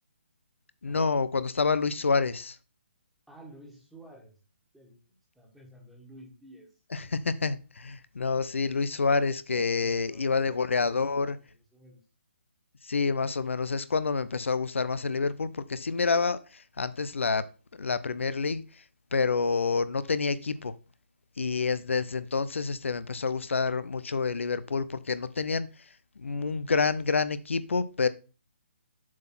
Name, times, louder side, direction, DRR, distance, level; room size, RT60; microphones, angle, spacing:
voice 1, 0.8-2.6 6.9-11.4 12.8-17.4 17.8-18.8 19.1-20.8 21.4-25.7 26.2-28.1, left 4 dB, 85° left, 0.6 m, -28 dB
voice 2, 3.3-4.4 4.7-6.8 9.7-12.1, right 1 dB, ahead, 1.6 m, -52 dB
7.5 x 3.8 x 5.8 m
hypercardioid pair, 155°, 7 cm